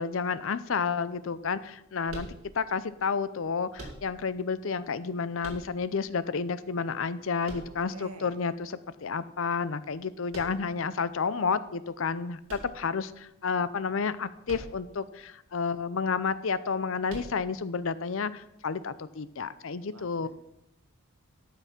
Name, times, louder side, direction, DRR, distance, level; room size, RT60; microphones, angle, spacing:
voice 1, 0.0-2.3 2.5-20.3, left 5 dB, 60° left, 15 dB, 0.5 m, -31 dB
sound 1, 2.1-2.9 3.7-4.4 5.4-6.1 7.4-8.2 10.3-10.9 12.4-13.3 14.4-15.0 15.3-15.4 17.1-17.7, right 1 dB, 65° right, 2.5 m, -44 dB
voice 2, 7.6-8.3 19.8-20.3, right 2 dB, 90° right, 6 dB, 1.6 m, -48 dB
12.5 x 5.9 x 5.9 m, 0.83 s
head